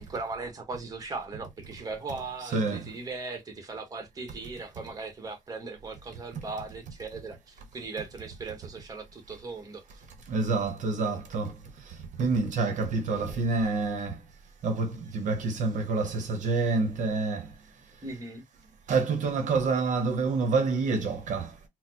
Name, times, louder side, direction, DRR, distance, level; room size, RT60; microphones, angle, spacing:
voice 1, 0.0-9.8 18.0-18.4, right 3 dB, 30° right, 1.1 m, -38 dB
voice 2, 2.5-2.9 6.3-6.4 10.3-14.2 14.6-17.5 18.9-21.6, right 4 dB, 70° right, 0.8 m, -28 dB
4.1 x 2.0 x 2.7 m
cardioid pair, 105°, 13 cm